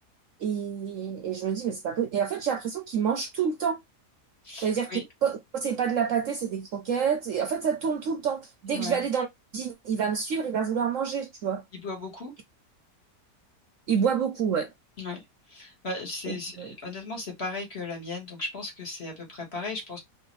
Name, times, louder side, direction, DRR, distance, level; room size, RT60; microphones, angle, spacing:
voice 1, 0.4-3.8 4.6-9.3 9.5-11.6 13.9-14.7 16.3-16.7, right 7 dB, 65° right, 0.9 m, -28 dB
voice 2, 4.4-5.0 8.7-9.0 11.7-12.3 15.0-15.2 15.5-20.0, left 3 dB, 40° left, 1.6 m, -36 dB
3.4 x 3.0 x 3.0 m
omnidirectional pair, 1.7 m